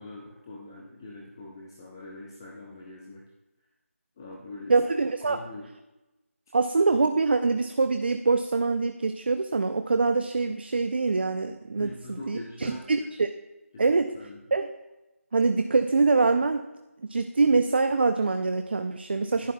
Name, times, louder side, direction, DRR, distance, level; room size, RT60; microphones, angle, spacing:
voice 1, 0.0-3.2 4.2-4.8 5.2-5.6 11.7-12.8 13.7-14.4, left 2 dB, 15° left, -3 dB, 0.5 m, -43 dB
voice 2, 4.7-5.4 6.5-13.3 13.8-14.1 14.5-14.7 15.3-16.6 17.1-19.5, right 3 dB, 45° right, 8 dB, 0.3 m, -24 dB
11.0 x 9.1 x 2.2 m, 1.0 s
figure-of-eight pair, 170°, 8 cm